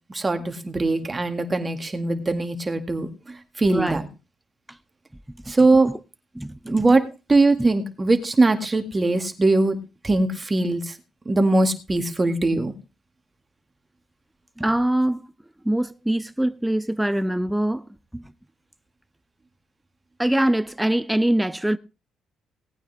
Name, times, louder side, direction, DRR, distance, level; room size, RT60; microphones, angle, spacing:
voice 1, 0.1-4.0 5.5-5.9 6.7-7.0 7.3-9.8 10.0-11.0 11.3-12.7, right 2 dB, 25° right, 2.0 m, -21 dB
voice 2, 3.7-4.0 4.7-4.8 5.3-6.0 6.3-6.9 7.6-7.7 14.6-15.2 15.6-17.8 18.1-18.3 20.2-21.8, right 1 dB, 5° right, 0.6 m, -24 dB
18.0 x 9.0 x 3.5 m
cardioid pair, 90°, 0 cm